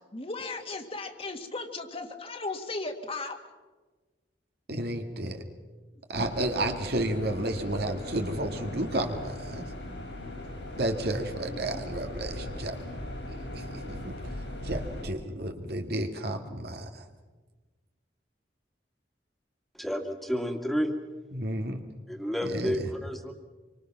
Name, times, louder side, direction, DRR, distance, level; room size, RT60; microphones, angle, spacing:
voice 1, 0.1-3.4 7.5-7.7 11.5-11.6, left 3 dB, 35° left, 4 dB, 2.0 m, -36 dB
voice 2, 4.7-5.4 6.1-9.6 10.8-12.8 13.5-14.2 14.6-17.0 21.3-21.8 22.5-22.8, right 1 dB, 65° right, 5 dB, 2.2 m, -31 dB
birmingham-aston-canal-extractor-fan, 6.1-15.0, left 1 dB, 85° left, 7.3 m, -39 dB
voice 3, 19.7-20.9 22.1-23.3, equal, ahead, 4 dB, 2.1 m, -30 dB
26.5 x 25.0 x 6.0 m, 1.3 s
head